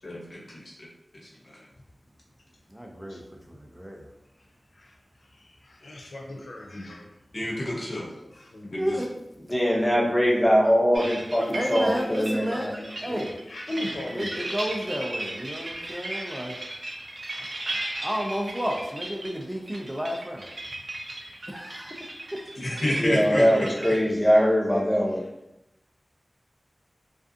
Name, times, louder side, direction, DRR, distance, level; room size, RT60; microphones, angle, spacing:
voice 1, 0.0-0.6 7.3-8.1 8.6-9.0 22.6-23.4, left 1 dB, 65° left, -5 dB, 0.7 m, -29 dB
voice 2, 2.7-3.2 3.5-4.0 8.8-9.1 11.5-12.8 13.0-13.3 14.1-16.6 17.7-20.4 21.5-22.1, equal, 10° right, 0 dB, 0.4 m, -31 dB
voice 3, 5.3-7.1 7.9-8.1 8.3-8.7 10.3-10.7 11.0-13.0 13.5-14.6, left 1 dB, 85° left, 0 dB, 0.3 m, -39 dB
voice 4, 9.5-13.2 23.0-25.2, equal, 20° left, -5 dB, 0.8 m, -22 dB
sound 1, 10.9-24.0, right 1 dB, 70° right, 0.4 m, -36 dB
2.4 x 2.3 x 2.4 m, 0.88 s
wide cardioid pair, 50°, 0 cm